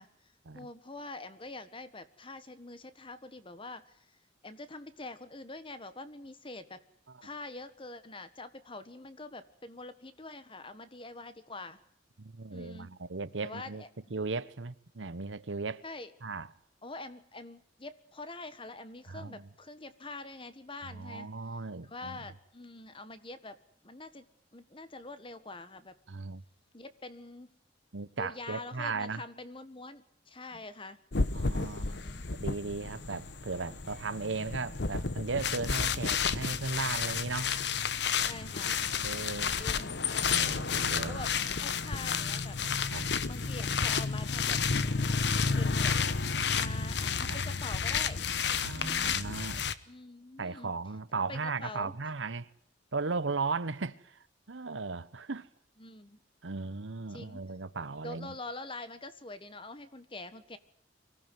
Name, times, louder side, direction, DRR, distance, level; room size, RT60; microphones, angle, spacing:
voice 1, 0.0-4.2 4.4-6.8 7.2-11.8 12.5-12.9 13.4-13.9 15.8-16.1 16.8-21.3 21.8-23.6 23.8-24.2 24.5-25.9 26.7-27.5 28.2-31.0 31.7-32.2 38.2-38.8 39.6-40.0 41.0-41.3 41.6-43.0 43.3-44.6 45.5-46.0 46.5-48.2 48.7-49.2 49.9-50.7 51.3-51.9 55.8-56.2 57.1-57.4 58.0-60.6, left 2 dB, 30° left, 1.5 m, -45 dB
voice 2, 12.2-13.8 14.1-15.8 16.2-16.5 19.1-19.5 20.9-22.2 26.1-26.4 27.9-29.2 31.3-32.0 32.4-37.5 39.0-39.5 40.3-41.3 42.9-43.1 47.3-47.4 48.6-49.6 50.4-52.5 52.9-55.5 56.4-58.3, right 4 dB, 85° right, 1.0 m, -36 dB
sound 1, 31.1-49.7, left 5 dB, 65° left, 1.1 m, -31 dB
24.5 x 15.5 x 9.3 m
head